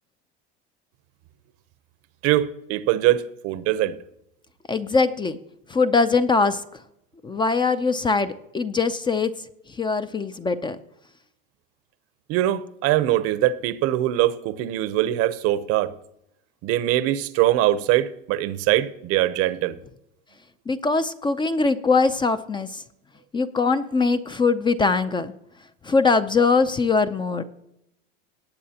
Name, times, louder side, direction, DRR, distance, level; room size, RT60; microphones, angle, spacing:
voice 1, 2.2-4.0 12.3-15.9 16.6-19.7, right 14 dB, 50° right, 0.8 m, -22 dB
voice 2, 4.7-5.4 5.7-6.6 7.2-9.3 9.8-10.8 20.7-22.8 23.3-25.3 25.8-27.4, left 4 dB, 15° left, 0.5 m, -22 dB
18.5 x 8.5 x 2.8 m
supercardioid pair, 115°, 30 cm